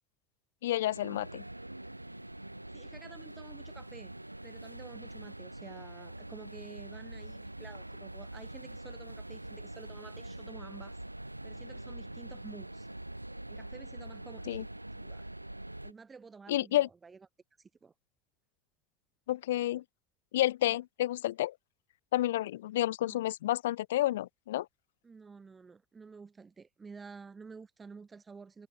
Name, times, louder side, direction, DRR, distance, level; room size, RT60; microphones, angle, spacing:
voice 1, 0.6-1.4 14.5-14.6 16.5-16.9 19.3-19.8 20.3-21.5 22.1-24.7, left 14 dB, 65° left, 0.5 m, -30 dB
sound 1, 0.9-15.9, right 1 dB, 90° right, 1.2 m, -44 dB
voice 2, 2.7-4.1 4.4-11.0 11.4-12.9 13.5-15.3 15.8-17.3 17.6-17.9 20.7-20.8 23.0-23.2 25.0-28.7, right 4 dB, 20° right, 4.5 m, -51 dB
figure-of-eight pair, 70°, 0 cm